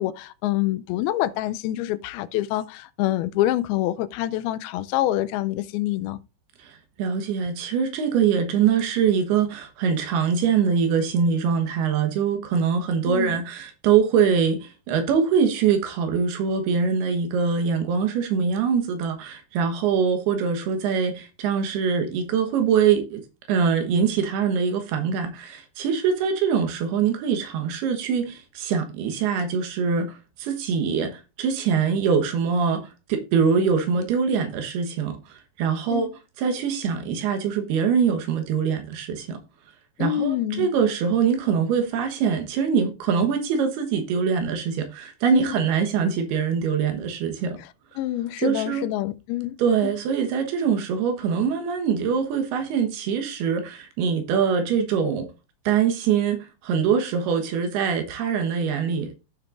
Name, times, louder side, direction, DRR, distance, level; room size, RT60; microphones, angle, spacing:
voice 1, 0.0-6.2 13.1-13.4 35.9-36.1 40.0-40.7 45.3-45.6 48.0-49.6 49.8-49.9, left 14 dB, 85° left, 2.5 m, -26 dB
voice 2, 6.6-23.2 23.5-36.1 36.4-39.4 40.0-47.6 48.4-48.9 49.6-55.3 55.7-56.4 56.6-59.1, right 6 dB, 90° right, 3.3 m, -23 dB
15.0 x 6.1 x 2.5 m
omnidirectional pair, 4.4 m